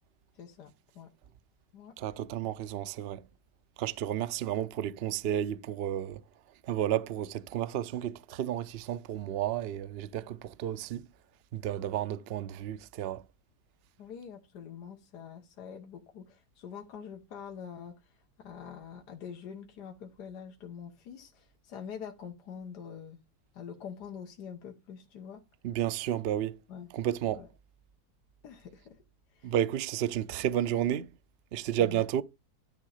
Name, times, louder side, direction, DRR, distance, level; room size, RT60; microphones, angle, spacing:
voice 1, 0.4-1.1 1.7-1.9 14.0-17.9 18.4-23.2 23.5-25.4 26.7-26.9 27.3-27.5 28.4-29.0 29.3-29.5 31.8-32.0, left 7 dB, 75° left, 1.6 m, -45 dB
voice 2, 2.0-3.2 3.8-6.2 6.6-11.1 11.5-13.2 25.6-26.6 26.9-27.4 29.4-31.1 31.5-32.2, right 11 dB, 85° right, 0.5 m, -32 dB
10.5 x 3.6 x 6.5 m
omnidirectional pair, 1.8 m